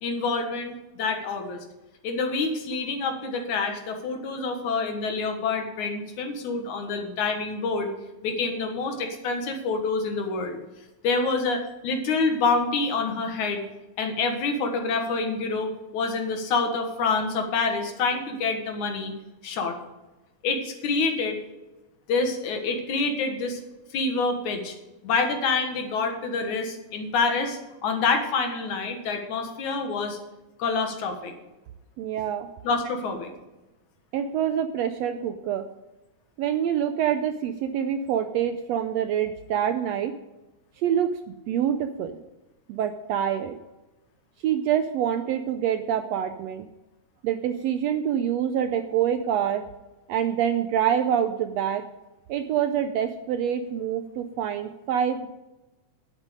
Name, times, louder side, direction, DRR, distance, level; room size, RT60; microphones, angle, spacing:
voice 1, 0.0-1.6 2.0-7.9 8.2-10.6 11.0-13.6 14.0-19.1 19.4-19.7 20.4-21.4 22.1-23.6 23.9-24.8 25.0-30.2 30.6-31.3 32.6-33.3, left 4 dB, 75° left, 4 dB, 2.9 m, -27 dB
voice 2, 32.0-32.5 34.1-35.7 36.4-40.1 40.8-42.2 42.7-43.6 44.4-46.6 47.2-49.6 50.1-51.8 52.3-55.3, right 9 dB, 80° right, 8 dB, 1.5 m, -26 dB
11.0 x 8.3 x 5.1 m, 1.0 s
omnidirectional pair, 3.5 m